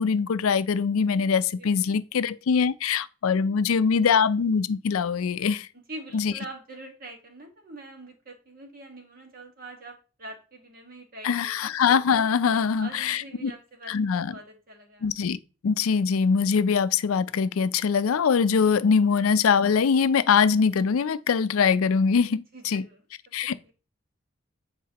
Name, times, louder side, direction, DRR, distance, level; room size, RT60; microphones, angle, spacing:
voice 1, 0.0-5.7 6.1-6.3 11.2-13.5 13.9-14.3 15.0-22.9 23.3-23.7, left 6 dB, 85° left, 0.4 m, -23 dB
voice 2, 5.9-11.7 12.8-13.9 14.3-15.1 22.5-23.0 23.4-23.7, right 2 dB, 45° right, 1.5 m, -44 dB
9.4 x 4.2 x 2.9 m
head